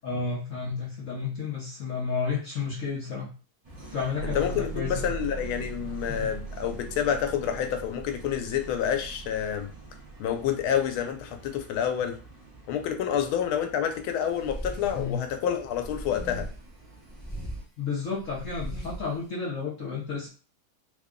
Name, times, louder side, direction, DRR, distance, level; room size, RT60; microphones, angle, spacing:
voice 1, 0.0-3.3 3.9-5.1 6.1-6.3 14.9-15.2 17.8-20.3, left 5 dB, 55° left, -4 dB, 0.9 m, -32 dB
sound 1, 3.6-17.6, right 2 dB, 45° right, 0.4 m, -48 dB
sound 2, 4.1-11.1, right 4 dB, 75° right, 0.8 m, -40 dB
voice 2, 4.2-9.7 10.2-12.2 12.7-16.5, left 9 dB, 85° left, 7 dB, 1.5 m, -28 dB
sound 3, 14.3-15.1 15.7-16.7 17.1-17.6 18.2-19.1, right 1 dB, 10° left, 0.7 m, -38 dB
3.5 x 2.2 x 3.6 m, 0.37 s
omnidirectional pair, 2.2 m